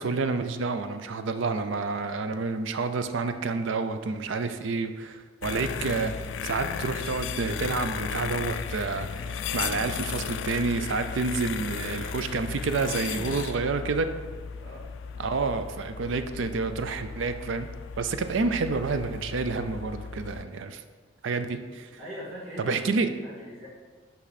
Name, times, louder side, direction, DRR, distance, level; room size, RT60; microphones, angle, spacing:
voice 1, 0.0-6.1 6.4-14.1 15.2-17.7 18.0-20.8 21.2-21.9 22.6-23.1, right 4 dB, 65° right, 9 dB, 0.5 m, -29 dB
sound 1, 5.4-20.5, left 7 dB, 65° left, 0.3 m, -35 dB
voice 2, 13.1-14.1 14.6-14.9 22.0-23.7, equal, 85° right, -6 dB, 2.1 m, -42 dB
5.8 x 5.6 x 4.1 m, 1.4 s
head